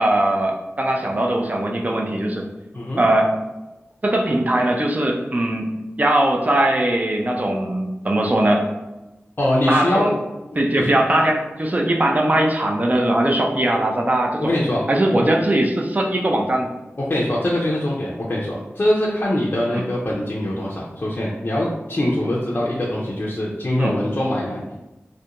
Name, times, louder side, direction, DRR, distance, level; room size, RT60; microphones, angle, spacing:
voice 1, 0.0-2.4 3.0-3.3 4.0-8.7 9.7-10.1 10.6-14.5 14.9-16.7 19.7-19.8 23.8-23.9, right 1 dB, 35° right, 1 dB, 0.5 m, -20 dB
voice 2, 9.4-10.1 10.7-10.9 14.4-14.8 15.1-15.3 17.0-24.6, left 1 dB, 45° left, -5 dB, 0.4 m, -23 dB
2.4 x 2.1 x 2.8 m, 1.0 s
wide cardioid pair, 45°, 5 cm